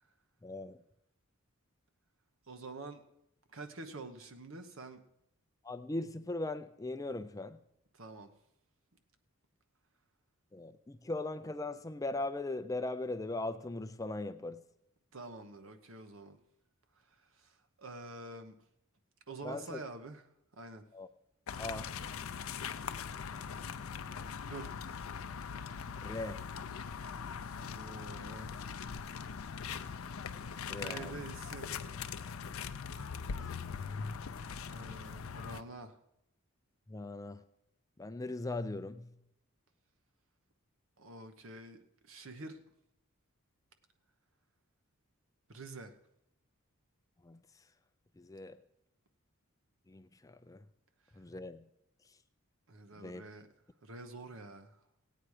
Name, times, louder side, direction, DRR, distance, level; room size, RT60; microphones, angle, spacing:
voice 1, 0.4-0.8 5.6-7.6 10.5-14.7 19.4-19.8 20.9-21.1 21.6-22.0 26.0-26.5 30.7-31.2 36.9-37.4 38.0-39.2 47.2-47.6 48.2-48.6 49.9-50.6 51.1-51.7 52.1-52.2 52.9-53.2, left 2 dB, 15° left, 0.4 m, -40 dB
voice 2, 2.5-3.0 3.5-5.0 7.9-8.3 15.1-16.4 17.1-18.6 19.3-20.2 20.5-20.8 24.5-24.8 27.6-28.6 29.8-30.0 30.7-31.8 34.7-36.0 41.0-41.8 42.0-42.6 45.5-46.0 52.7-53.5 53.8-54.8, right 2 dB, 65° right, 1.1 m, -47 dB
sound 1, 21.5-35.6, left 6 dB, 75° left, 0.5 m, -41 dB
17.0 x 8.9 x 4.9 m
head